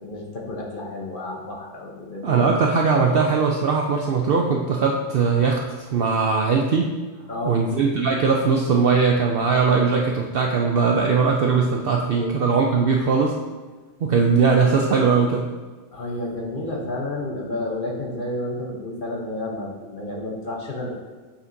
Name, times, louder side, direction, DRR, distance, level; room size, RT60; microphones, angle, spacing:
voice 1, 0.0-2.5 7.3-7.7 12.1-12.3 15.9-20.9, left 1 dB, 45° left, -1 dB, 1.0 m, -30 dB
voice 2, 2.2-6.9 7.4-13.4 14.0-15.5, right 5 dB, 65° right, 1 dB, 0.6 m, -20 dB
8.3 x 5.7 x 2.7 m, 1.3 s
omnidirectional pair, 1.4 m